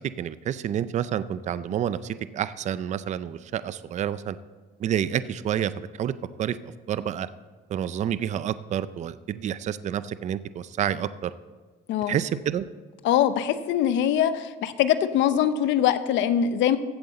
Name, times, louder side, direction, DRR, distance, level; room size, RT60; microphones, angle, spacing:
voice 1, 0.2-4.3 4.8-5.7 6.0-6.1 6.4-7.3 7.7-11.3 12.1-12.6, right 10 dB, 35° right, 15 dB, 0.4 m, -29 dB
voice 2, 13.0-16.8, left 10 dB, 70° left, 12 dB, 0.7 m, -22 dB
15.0 x 7.8 x 4.2 m, 1.4 s
cardioid pair, 135°, 20 cm